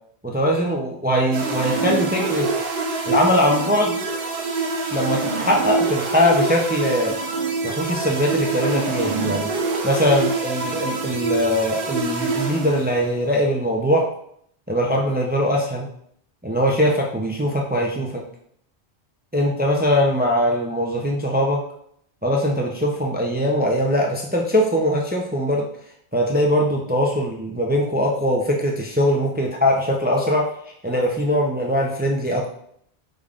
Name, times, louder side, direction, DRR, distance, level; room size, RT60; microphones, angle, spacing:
voice 1, 0.2-2.5 3.1-4.0 4.9-7.1 7.6-9.5 9.8-14.1 14.7-15.9 16.4-18.2 19.3-21.6 22.2-25.6 26.1-30.5 30.8-32.5, equal, 15° right, 0 dB, 0.3 m, -21 dB
sound 1, 1.3-13.2, right 4 dB, 60° right, 0.9 m, -25 dB
5.2 x 3.5 x 2.5 m, 0.67 s
omnidirectional pair, 1.1 m